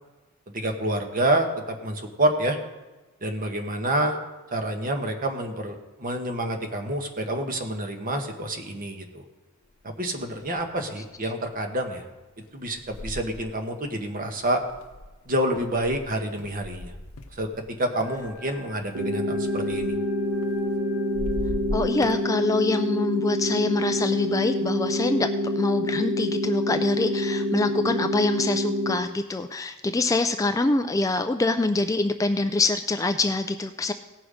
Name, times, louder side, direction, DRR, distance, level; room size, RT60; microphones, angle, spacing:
voice 1, 0.5-2.6 3.2-4.2 4.5-9.2 9.8-12.0 12.5-14.6 15.3-16.9 17.3-19.9, right 1 dB, 40° right, 5 dB, 1.3 m, -28 dB
sound 1, 9.8-9.9 10.3-10.8 11.3-11.5 12.4-17.7 18.0-20.8 21.1-22.2, left 1 dB, 90° left, 0.9 m, -38 dB
sound 2, 17.9-22.4, right 1 dB, 20° right, 4.0 m, -48 dB
sound 3, 18.9-29.0, left 1 dB, 80° right, 1.1 m, -27 dB
voice 2, 21.7-25.3 25.6-33.9, left 2 dB, 15° left, 8 dB, 0.3 m, -25 dB
17.5 x 6.1 x 5.0 m, 1.2 s
head